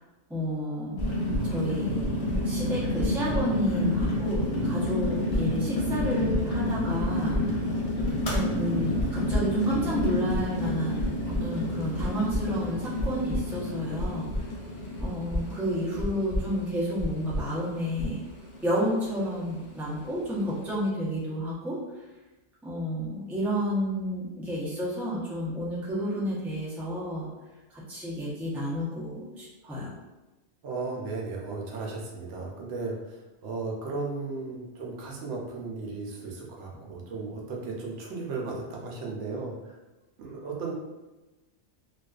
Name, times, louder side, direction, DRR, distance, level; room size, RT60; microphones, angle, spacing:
voice 1, 0.3-1.1 1.4-2.1 2.4-7.7 8.2-14.3 15.0-18.2 18.6-21.8 22.6-27.3 27.7-29.9, equal, ahead, -8 dB, 0.4 m, -31 dB
sound 1, 1.0-20.8, left 1 dB, 90° left, 1.0 m, -30 dB
sound 2, 1.0-1.4 2.0-2.4 3.0-3.4 4.0-4.4 5.0-5.4 6.0-6.4 7.0-7.4 8.0-8.4 9.0-9.4 10.0-10.4 11.0-11.4 12.0-12.4 13.0-13.4 14.0-14.4 15.0-15.4 16.0-16.4 17.0-17.4 18.0-18.3, left 1 dB, 35° right, 0.7 m, -30 dB
voice 2, 30.6-39.8 40.2-40.7, right 3 dB, 80° right, -2 dB, 0.9 m, -35 dB
2.4 x 2.3 x 2.3 m, 1.1 s
omnidirectional pair, 1.2 m